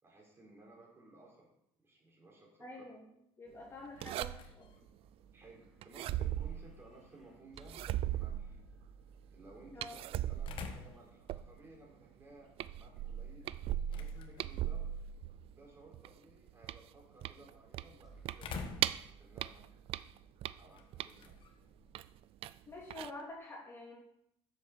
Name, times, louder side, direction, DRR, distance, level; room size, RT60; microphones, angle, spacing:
voice 1, 0.0-1.5 1.8-2.9 5.3-8.6 9.3-15.0 15.5-18.6 19.1-20.0 20.6-21.3, right 2 dB, 20° right, -2 dB, 4.6 m, -58 dB
voice 2, 2.6-3.1 3.4-4.7 9.7-10.0 22.7-24.0, left 2 dB, 20° left, -4 dB, 3.0 m, -48 dB
sound 1, 3.6-23.4, left 4 dB, 50° left, 1.3 m, -53 dB
sound 2, 4.0-4.7 5.8-7.1 7.6-8.9 9.8-11.8 12.2-12.3 12.6-15.5 15.9-19.1 19.4-21.4 21.9-22.6 22.9-23.1, right 12 dB, 55° right, 0.4 m, -38 dB
sound 3, 4.5-11.8 18.0-22.1, right 4 dB, ahead, 2.3 m, -60 dB
7.8 x 7.5 x 6.9 m, 0.78 s
cardioid pair, 115°, 11 cm